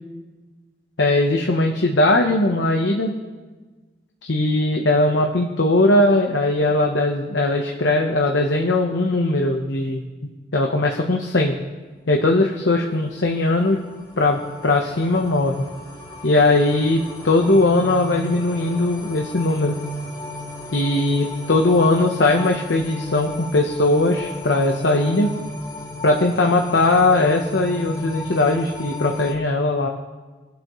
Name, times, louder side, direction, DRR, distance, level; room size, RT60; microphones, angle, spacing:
voice 1, 1.0-3.1 4.2-10.0 10.5-11.6 12.1-13.8 14.2-15.6 16.2-17.0 17.2-19.8 20.7-25.3 26.0-29.9, left 2 dB, 80° left, 2 dB, 1.0 m, -19 dB
sound 1, 13.1-29.3, left 1 dB, 25° left, 2.2 m, -34 dB
24.5 x 8.3 x 3.1 m, 1.3 s
head